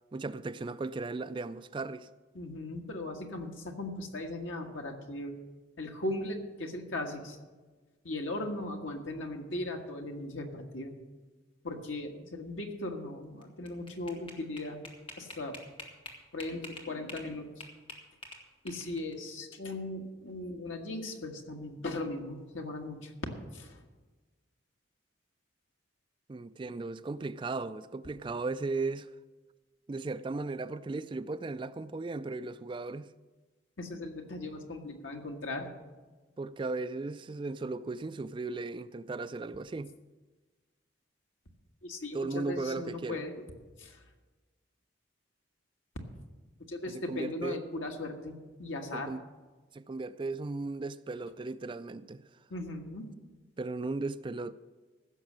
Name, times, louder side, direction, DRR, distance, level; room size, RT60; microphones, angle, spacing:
voice 1, 0.1-2.1 26.3-29.1 29.9-33.1 36.4-39.9 42.1-43.2 46.9-47.6 48.9-49.2 49.7-52.2 53.6-54.5, right 3 dB, 25° right, 0.3 m, -36 dB
voice 2, 2.3-5.3 5.8-7.4 8.0-10.9 11.6-14.8 15.2-15.6 16.3-17.7 18.6-23.1 23.5-23.8 33.8-35.7 41.8-43.3 43.8-44.0 46.7-49.1 52.5-53.1, left 2 dB, 85° left, 1.6 m, -38 dB
sound 1, 13.4-17.3 17.6-19.1, left 1 dB, 25° left, 1.7 m, -46 dB
15.5 x 6.4 x 7.4 m
head